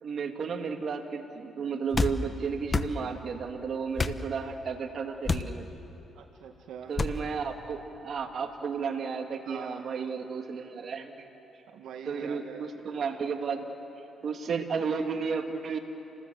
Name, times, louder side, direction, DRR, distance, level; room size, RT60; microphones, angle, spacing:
voice 1, 0.0-5.7 6.9-11.3 12.1-13.7 14.2-15.8, right 5 dB, 55° right, 4 dB, 2.2 m, -33 dB
sound 1, 1.9-2.2 2.7-2.9 4.0-4.2 5.2-5.5 7.0-7.2, left 4 dB, 30° left, 1.0 m, -27 dB
voice 2, 6.1-6.9 9.5-9.9 11.7-12.6, right 7 dB, 80° right, 3 dB, 1.6 m, -43 dB
29.0 x 19.5 x 7.7 m, 3.0 s
cardioid pair, 90°, 0 cm